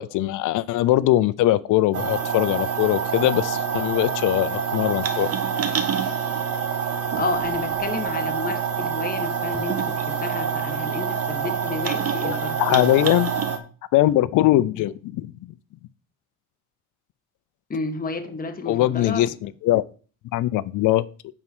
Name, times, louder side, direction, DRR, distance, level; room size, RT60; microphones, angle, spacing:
voice 1, 0.0-5.3 12.2-13.3 13.9-15.3 18.7-19.8 20.3-21.1, left 15 dB, 70° left, 0.6 m, -21 dB
sound 1, 1.9-13.6, right 7 dB, 50° right, 1.5 m, -26 dB
voice 2, 7.2-12.8 17.7-19.2, left 3 dB, 25° left, 1.5 m, -31 dB
9.3 x 4.6 x 6.1 m
cardioid pair, 100°, 32 cm